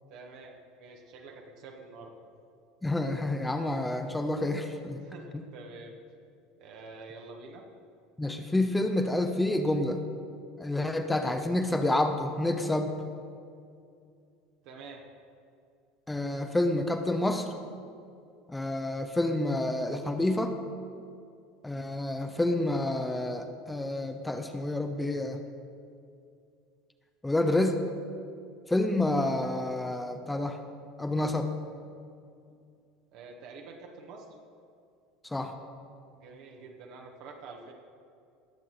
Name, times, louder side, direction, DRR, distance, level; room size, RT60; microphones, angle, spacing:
voice 1, 0.1-2.1 5.0-6.0 6.6-7.6 14.6-15.0 33.1-34.3 36.1-37.7, right 3 dB, 50° right, 1 dB, 1.2 m, -47 dB
voice 2, 2.8-5.0 8.2-10.0 10.6-12.9 16.1-17.5 18.5-20.6 21.6-25.4 27.2-27.8 28.7-30.6 31.0-31.5 35.3-35.5, left 1 dB, 10° left, 6 dB, 0.8 m, -28 dB
19.0 x 7.4 x 4.1 m, 2.4 s
figure-of-eight pair, 70°, 0 cm